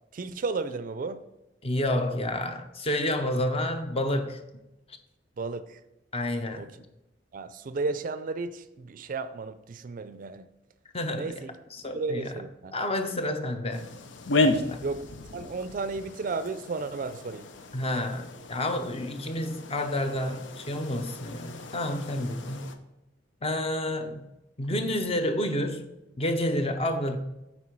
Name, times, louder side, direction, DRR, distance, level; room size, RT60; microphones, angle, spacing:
voice 1, 0.1-1.2 5.4-5.8 6.6-6.7 7.3-10.4 11.2-11.5 11.9-12.7 14.8-15.0 15.3-17.5, right 3 dB, 50° right, 0.4 m, -33 dB
voice 2, 1.6-4.4 6.1-6.7 10.9-11.4 11.7-13.9 14.4-14.8 17.7-22.7 23.4-24.3 24.6-25.9 26.2-27.2, left 1 dB, 35° left, 0.7 m, -29 dB
sound 1, 13.7-22.8, left 2 dB, 85° left, 0.6 m, -33 dB
8.6 x 4.4 x 4.6 m
head